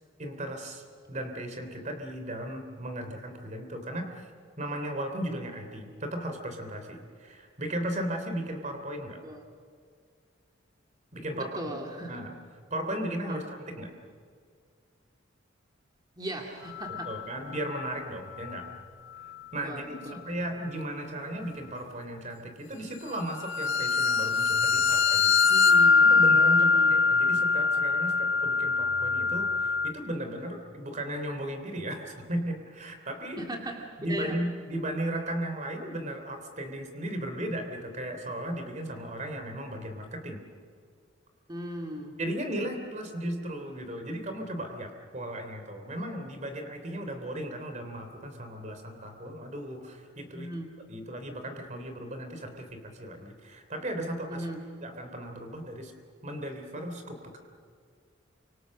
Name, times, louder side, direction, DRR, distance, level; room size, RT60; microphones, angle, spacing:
voice 1, 0.2-4.1 4.6-9.2 11.1-11.5 12.1-12.3 12.7-13.9 17.1-18.6 19.2-25.4 26.0-33.4 34.0-40.4 42.2-50.5 50.9-54.4 54.8-55.9 56.2-57.4, right 1 dB, 40° right, 6 dB, 3.3 m, -36 dB
voice 2, 11.3-12.3 13.3-13.4 16.2-17.1 19.6-20.3 25.4-26.1 26.6-27.0 33.4-33.8 34.1-34.4 41.5-42.1 50.3-50.7 54.3-54.6, right 1 dB, 20° right, 1 dB, 2.3 m, -37 dB
sound 1, 16.8-17.2 17.6-17.9 23.4-29.9, left 4 dB, 85° left, 1.0 m, -23 dB
29.5 x 25.5 x 6.6 m, 2.1 s
head